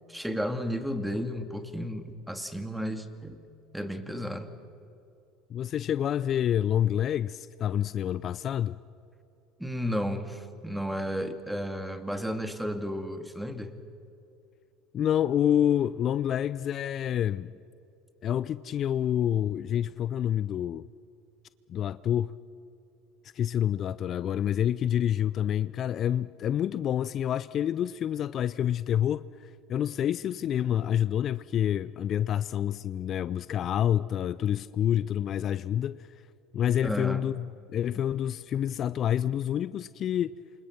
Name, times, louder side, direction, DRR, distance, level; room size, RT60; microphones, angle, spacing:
voice 1, 0.1-3.4 3.7-4.5 9.6-13.8 36.8-37.2, equal, 5° right, 2.3 m, -33 dB
voice 2, 5.5-8.8 14.9-17.5 18.2-20.9 21.7-22.4 23.3-36.1 36.5-40.3, left 10 dB, 45° left, 0.5 m, -28 dB
28.5 x 25.5 x 6.1 m
hypercardioid pair, 70°, 0 cm